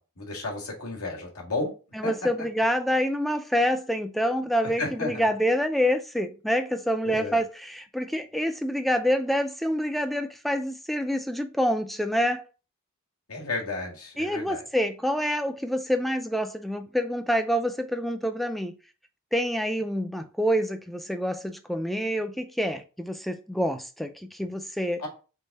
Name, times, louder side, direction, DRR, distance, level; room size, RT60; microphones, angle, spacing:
voice 1, 0.2-1.7 2.0-2.1 4.8-5.2 7.0-7.4 13.3-14.6 25.0-25.1, left 2 dB, 85° left, 1.7 m, -32 dB
voice 2, 1.9-12.4 14.2-18.7 19.3-25.0, equal, ahead, 0.4 m, -27 dB
3.8 x 3.5 x 4.0 m
head